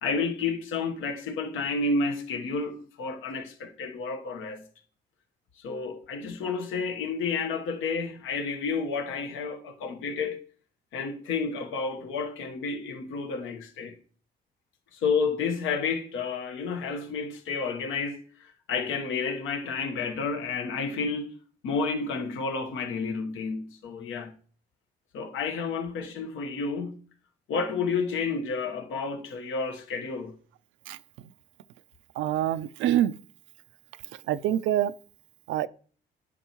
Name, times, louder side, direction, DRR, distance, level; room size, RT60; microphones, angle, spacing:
voice 1, 0.0-4.6 5.6-10.4 10.9-13.9 14.9-21.3 21.6-24.3 25.1-27.0 27.5-30.3, left 4 dB, 85° left, 1.2 m, -30 dB
voice 2, 32.2-33.1 34.3-34.9 35.5-35.7, right 12 dB, 80° right, 0.4 m, -25 dB
9.9 x 5.3 x 3.0 m
cardioid pair, 90°, 20 cm